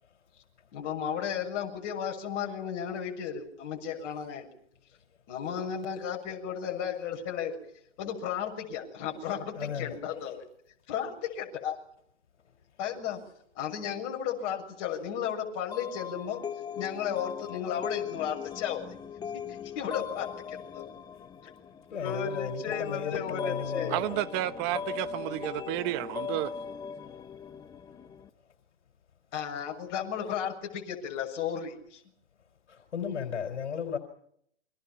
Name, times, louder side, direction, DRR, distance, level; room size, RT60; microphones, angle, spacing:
voice 1, 0.7-4.5 5.3-7.5 8.0-10.4 10.9-11.8 12.8-13.2 13.6-16.4 16.8-19.0 19.3-20.9 21.4-21.5 21.9-24.0 29.3-32.0, left 8 dB, 35° left, 6.9 m, -34 dB
voice 2, 9.5-10.0 12.4-12.5 21.2-21.3 21.9-24.2 25.2-25.3 27.0-27.1 28.4-28.5 32.7-34.0, left 7 dB, 70° left, 4.5 m, -35 dB
sound 1, 15.7-28.3, left 6 dB, 10° left, 1.1 m, -39 dB
voice 3, 23.9-26.6, right 15 dB, 30° right, 1.2 m, -31 dB
29.5 x 24.5 x 5.8 m
hypercardioid pair, 135°, 36 cm